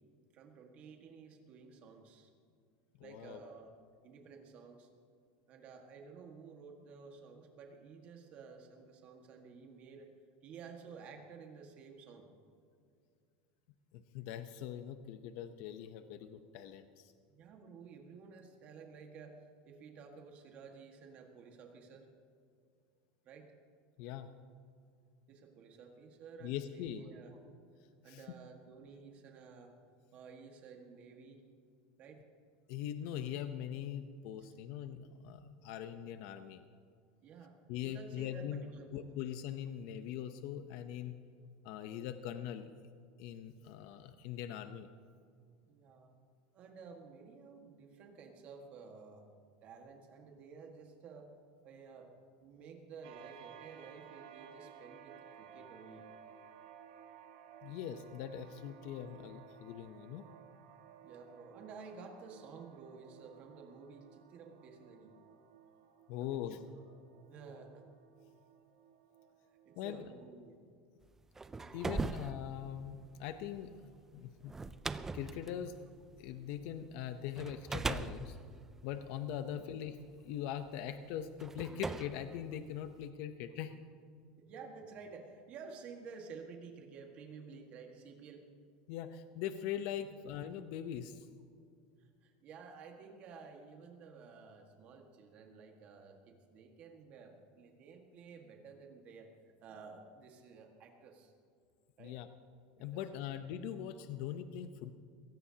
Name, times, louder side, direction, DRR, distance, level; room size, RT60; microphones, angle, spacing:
voice 1, 0.3-2.3 3.0-3.7 4.0-4.9 5.5-10.1 10.4-12.3 17.3-22.1 23.2-23.5 25.3-27.4 28.0-29.7 30.1-31.4 32.0-32.2 37.2-37.6 37.8-39.0 45.7-46.1 46.5-49.3 49.6-51.3 51.6-52.1 52.4-56.0 61.0-65.1 66.2-66.6 67.3-67.9 69.6-70.5 79.4-79.7 84.4-88.4 92.0-99.3 99.6-101.3 102.0-102.2 102.8-103.0, right 5 dB, 40° right, 2 dB, 1.6 m, -53 dB
voice 2, 3.0-3.4 13.9-17.1 24.0-24.3 26.4-27.0 28.1-28.2 32.7-36.6 37.7-38.6 38.9-41.1 41.6-42.7 43.2-44.9 57.6-60.2 66.1-66.6 69.8-70.1 71.7-73.7 74.1-74.5 75.1-75.7 76.2-78.4 78.8-80.0 80.2-83.8 88.9-91.3 102.0-102.3 102.8-104.9, left 10 dB, 55° left, 9 dB, 0.7 m, -42 dB
sound 1, 53.0-70.3, right 8 dB, 85° right, 1.7 m, -57 dB
sound 2, 71.2-76.8 77.4-79.8 80.7-80.8 81.4-83.1, right 3 dB, 10° right, 0.4 m, -41 dB
22.5 x 17.0 x 2.8 m, 2.3 s
supercardioid pair, 150°, 4 cm